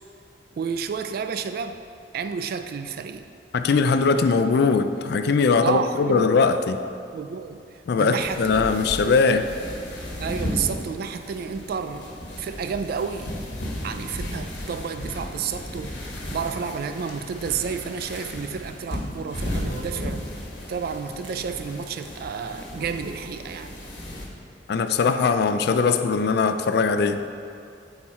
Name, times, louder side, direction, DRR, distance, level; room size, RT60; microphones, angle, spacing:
voice 1, 0.6-1.8 2.1-3.2 5.6-6.3 7.1-7.6 8.0-8.7 10.2-12.1 12.4-13.3 13.8-20.3 20.7-23.7, right 6 dB, 55° right, 9 dB, 0.3 m, -30 dB
voice 2, 3.5-6.8 7.9-9.5 24.7-27.2, left 4 dB, 60° left, 9 dB, 0.4 m, -20 dB
sound 1, 8.2-24.3, left 1 dB, 90° left, 1.3 m, -35 dB
sound 2, 18.1-18.3 18.9-19.0 19.6-20.2 21.2-21.4 22.0-22.1 22.7-23.3, right 4 dB, 80° right, 0.8 m, -44 dB
8.2 x 4.4 x 4.3 m, 2.5 s
head